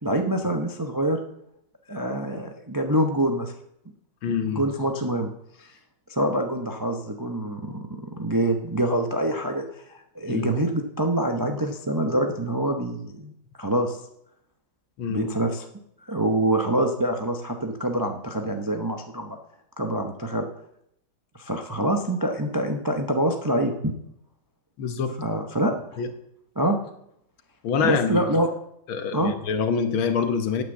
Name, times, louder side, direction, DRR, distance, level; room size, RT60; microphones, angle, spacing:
voice 1, 0.0-1.2 1.9-3.5 4.3-5.3 5.6-5.7 6.1-13.3 13.6-14.0 15.0-15.6 16.0-19.4 19.8-20.4 21.3-23.9 25.2-26.0 26.6-26.8 27.8-28.5 29.1-29.3, right 1 dB, 30° right, 4 dB, 0.3 m, -25 dB
voice 2, 4.2-4.6 10.3-10.5 15.0-15.3 24.8-25.2 26.0-26.1 27.6-28.2 28.9-30.6, left 6 dB, 85° left, 8 dB, 2.0 m, -25 dB
8.9 x 8.8 x 7.3 m, 0.75 s
omnidirectional pair, 2.2 m